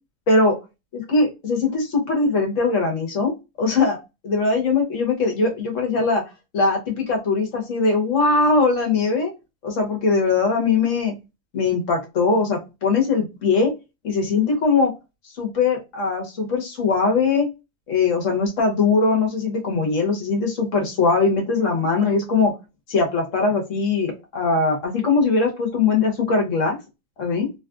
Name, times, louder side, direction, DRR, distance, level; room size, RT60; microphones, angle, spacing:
voice 1, 0.9-3.3 3.6-4.0 4.2-6.2 6.5-9.3 9.6-11.1 11.5-13.7 14.0-14.9 15.4-17.5 17.9-22.5 22.9-26.8 27.2-27.5, left 4 dB, 60° left, 1 dB, 1.4 m, -21 dB
3.3 x 2.4 x 2.3 m, 0.24 s
omnidirectional pair, 1.5 m